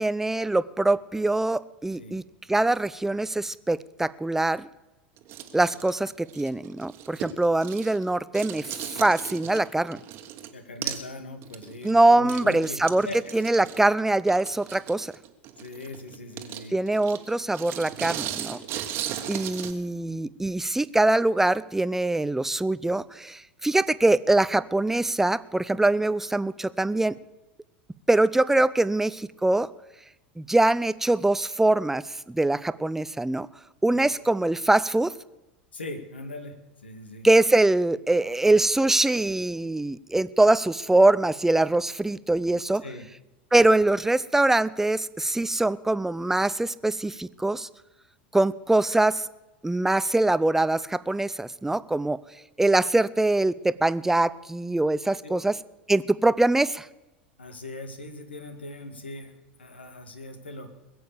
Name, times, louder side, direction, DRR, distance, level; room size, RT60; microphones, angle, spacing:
voice 1, 0.0-2.2 2.5-4.7 5.5-10.0 11.8-13.1 13.3-15.1 16.7-18.6 19.3-27.2 28.1-29.7 30.4-33.5 33.8-35.1 37.2-42.8 43.5-47.7 48.3-49.3 49.6-52.2 52.6-55.6 55.9-56.9, right 2 dB, 5° right, 18 dB, 0.5 m, -23 dB
sound 1, 5.2-8.1 8.3-10.5 10.8-11.1 11.4-19.7, right 11 dB, 45° right, 1.4 m, -37 dB
voice 2, 10.5-12.8 13.0-13.2 13.6-13.7 15.6-16.8 33.9-34.1 35.7-36.6 36.8-37.3 42.8-43.1 55.2-55.4 57.4-60.7, left 2 dB, 85° left, 7 dB, 1.9 m, -40 dB
21.0 x 7.9 x 6.9 m, 1.0 s
figure-of-eight pair, 85°, 6 cm